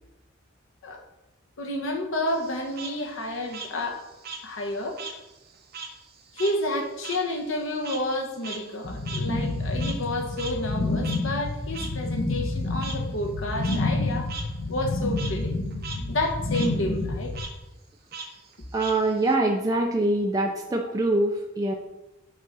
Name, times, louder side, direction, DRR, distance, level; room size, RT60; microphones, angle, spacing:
voice 1, 1.6-4.1 4.4-5.0 6.3-14.3 14.7-15.6 16.1-17.3 20.8-20.9, left 1 dB, 75° left, 2 dB, 1.1 m, -30 dB
Frog, 2.3-5.2 5.5-10.1 10.4-10.5 11.0-11.2 11.7-11.9 12.8-13.0 13.5-13.8 14.3-14.4 14.8-15.3 15.7-16.0 16.3-16.7 17.3-17.5 18.1-19.3, right 4 dB, 50° right, 1.0 m, -39 dB
sound 1, 8.8-17.4, left 2 dB, 55° left, 0.9 m, -29 dB
voice 2, 18.7-21.7, right 2 dB, 20° right, 1 dB, 0.4 m, -24 dB
6.3 x 3.6 x 5.5 m, 0.99 s
head